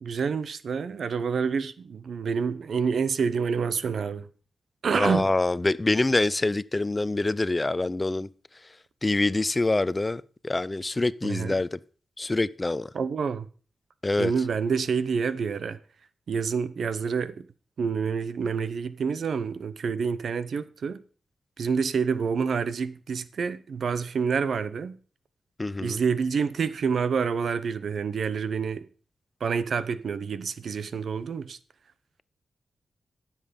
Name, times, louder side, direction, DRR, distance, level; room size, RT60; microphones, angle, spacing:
voice 1, 0.0-4.3 4.8-5.3 11.2-11.5 12.9-13.4 14.2-15.8 16.3-17.5 17.8-21.0 21.6-25.0 25.8-28.8 29.4-31.6, right 6 dB, 75° right, 0.8 m, -28 dB
voice 2, 4.9-8.3 9.0-11.8 12.2-12.9 14.0-14.3 25.6-26.0, left 2 dB, 25° left, 0.5 m, -25 dB
14.0 x 7.4 x 5.2 m
cardioid pair, 60°, 0 cm